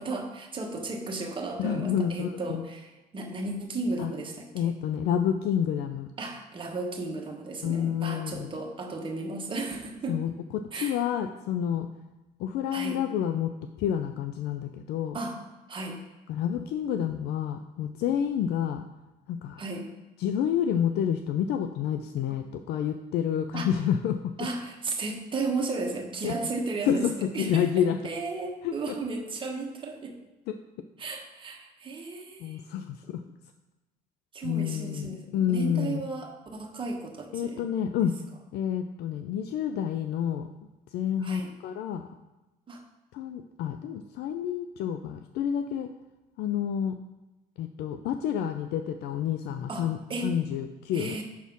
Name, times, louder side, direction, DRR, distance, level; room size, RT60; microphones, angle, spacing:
voice 1, 0.0-4.7 6.2-10.2 10.7-11.0 12.7-13.0 15.1-15.4 15.7-16.0 19.6-19.9 22.3-22.4 23.5-23.7 24.4-30.2 31.0-32.6 34.3-37.6 41.2-41.5 42.7-42.8 49.7-50.4 50.9-51.2, right 3 dB, 30° right, 1 dB, 1.2 m, -34 dB
voice 2, 1.6-2.6 4.0-4.1 4.5-6.1 7.6-8.5 10.1-11.9 12.4-13.5 13.8-15.2 16.3-18.8 19.3-19.6 20.2-24.3 26.2-26.3 26.9-28.0 28.6-28.9 32.4-33.2 34.4-36.0 37.3-38.1 38.5-40.5 40.9-42.1 43.1-45.9 46.4-46.9 47.6-51.2, left 9 dB, 75° left, 7 dB, 0.4 m, -29 dB
6.1 x 4.2 x 5.3 m, 1.1 s
cardioid pair, 110°, 17 cm